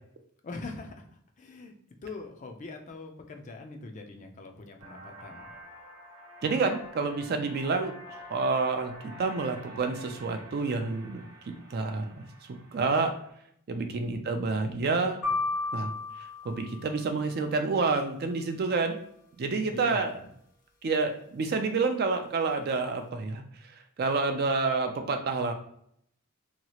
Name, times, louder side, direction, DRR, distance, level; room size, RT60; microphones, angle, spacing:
voice 1, 0.4-5.5 13.8-14.2 19.7-20.3, left 2 dB, 35° left, 4 dB, 0.4 m, -43 dB
sound 1, 4.8-13.3, left 1 dB, 85° right, 0.8 m, -48 dB
voice 2, 6.4-8.9 9.2-11.2 11.7-13.1 13.7-15.2 15.7-15.9 16.4-18.9 19.4-20.2 20.8-23.4 24.0-25.5, right 4 dB, 45° right, 6 dB, 0.4 m, -28 dB
sound 2, 15.2-17.4, left 3 dB, 90° left, 0.8 m, -33 dB
2.8 x 2.3 x 2.9 m, 0.69 s
head